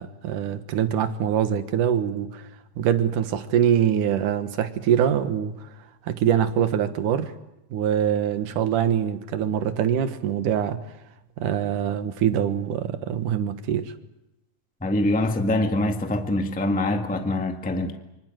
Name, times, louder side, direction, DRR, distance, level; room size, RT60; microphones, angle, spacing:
voice 1, 0.0-2.4 2.8-5.5 6.1-7.3 7.7-10.8 11.4-13.9, right 9 dB, 75° right, 2.9 m, -24 dB
voice 2, 14.8-18.0, left 1 dB, 5° left, 0.9 m, -24 dB
25.5 x 25.0 x 7.7 m
omnidirectional pair, 3.7 m